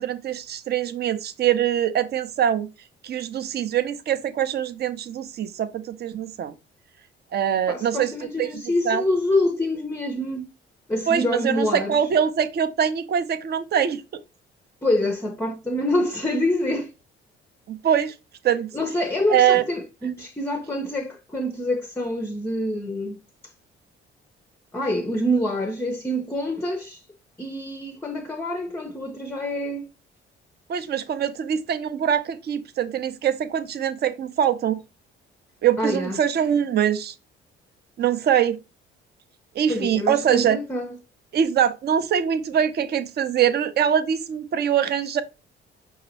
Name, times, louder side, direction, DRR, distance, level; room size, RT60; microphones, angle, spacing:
voice 1, 0.0-2.7 3.0-6.5 7.3-8.1 8.4-9.0 11.1-14.0 17.7-18.1 18.4-18.7 19.3-19.6 30.7-34.8 35.6-37.1 38.0-38.6 39.5-40.6 41.3-45.2, right 9 dB, 35° right, 0.6 m, -23 dB
voice 2, 7.7-10.4 10.9-12.0 14.8-16.9 18.7-23.2 24.7-27.0 27.4-29.9 35.8-36.2 39.7-41.0, left 1 dB, 10° left, 0.6 m, -26 dB
5.6 x 2.3 x 4.0 m
figure-of-eight pair, 45°, 29 cm